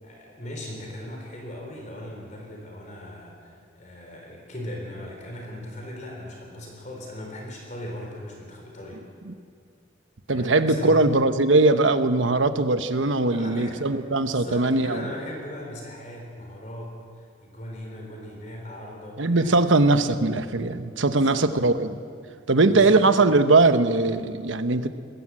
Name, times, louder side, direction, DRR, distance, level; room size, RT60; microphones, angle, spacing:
voice 1, 0.0-9.0 10.3-11.0 13.1-13.9 14.2-19.5 20.9-21.5 22.6-23.1, left 1 dB, 40° left, 0 dB, 4.0 m, -38 dB
voice 2, 10.3-15.0 19.2-22.0 22.5-24.9, right 2 dB, 85° right, 10 dB, 1.0 m, -20 dB
20.5 x 17.0 x 7.7 m, 2.4 s
head